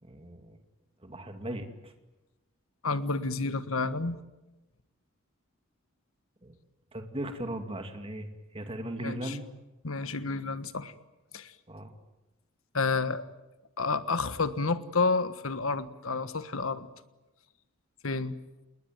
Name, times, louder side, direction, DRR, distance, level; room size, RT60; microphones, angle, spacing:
voice 1, 0.0-0.6 1.0-1.9 6.4-6.6 6.9-9.4 11.7-11.9, right 1 dB, 30° right, 6 dB, 2.4 m, -38 dB
voice 2, 2.8-4.2 9.0-9.4 9.8-10.9 11.3-11.5 12.7-13.3 13.8-16.9 18.0-18.4, left 4 dB, 85° left, 12 dB, 1.4 m, -30 dB
28.0 x 21.0 x 9.2 m, 1.0 s
head